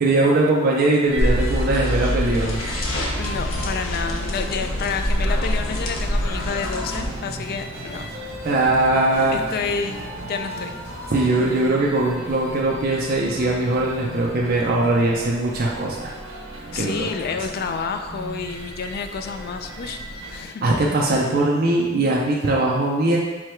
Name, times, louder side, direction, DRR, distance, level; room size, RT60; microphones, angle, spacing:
voice 1, 0.0-2.6 8.4-9.4 11.1-16.1 16.8-17.1 20.6-23.2, right 2 dB, 50° right, -3 dB, 0.5 m, -20 dB
sound 1, 1.0-20.4, right 1 dB, 90° right, 0.8 m, -36 dB
sound 2, 1.2-7.1, equal, 80° left, 0.7 m, -24 dB
voice 2, 3.2-8.1 9.3-10.8 16.7-20.9, left 5 dB, 50° left, 7 dB, 0.3 m, -29 dB
sound 3, 6.0-11.5, right 1 dB, 10° right, 1.3 m, -40 dB
4.6 x 2.2 x 4.3 m, 1.2 s
head